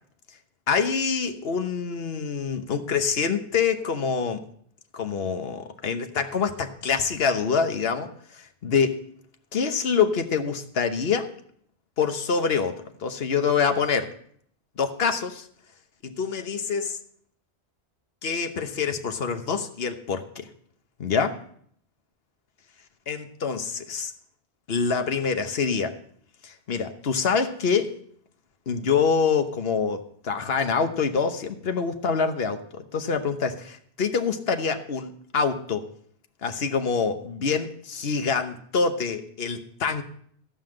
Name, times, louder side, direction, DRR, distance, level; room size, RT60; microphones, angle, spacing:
voice 1, 0.7-4.4 4.9-9.0 9.5-11.3 12.0-14.1 14.8-15.5 16.0-17.0 18.2-20.5 21.0-21.4 23.1-24.1 24.7-26.0 26.4-28.0 28.7-35.9 36.4-40.0, left 5 dB, 70° left, 8 dB, 1.3 m, -26 dB
14.5 x 5.6 x 7.7 m, 0.63 s
omnidirectional pair, 1.0 m